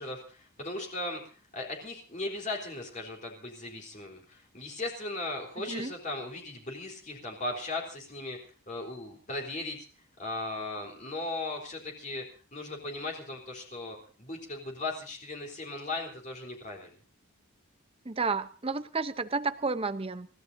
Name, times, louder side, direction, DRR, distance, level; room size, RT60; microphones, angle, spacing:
voice 1, 0.0-9.9 10.2-12.2 12.5-16.9, left 2 dB, 35° left, 0 dB, 3.6 m, -37 dB
voice 2, 18.1-20.3, right 4 dB, 25° right, 11 dB, 0.7 m, -31 dB
30.0 x 15.5 x 2.7 m, 0.37 s
head